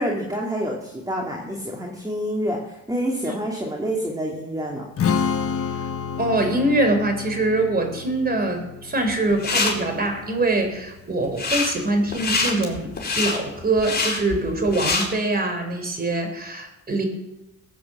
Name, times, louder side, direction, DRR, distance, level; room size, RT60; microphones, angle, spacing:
voice 1, 0.0-4.9, equal, 10° right, -1 dB, 2.7 m, -27 dB
Strum, 5.0-11.2, left 6 dB, 50° left, 1.3 m, -30 dB
voice 2, 6.2-17.1, right 2 dB, 30° right, 5 dB, 4.0 m, -23 dB
sound 1, 9.1-9.7 11.2-11.7 12.1-15.0, left 4 dB, 35° left, 4.5 m, -24 dB
16.0 x 8.9 x 7.8 m, 0.94 s
cardioid pair, 90°, 30 cm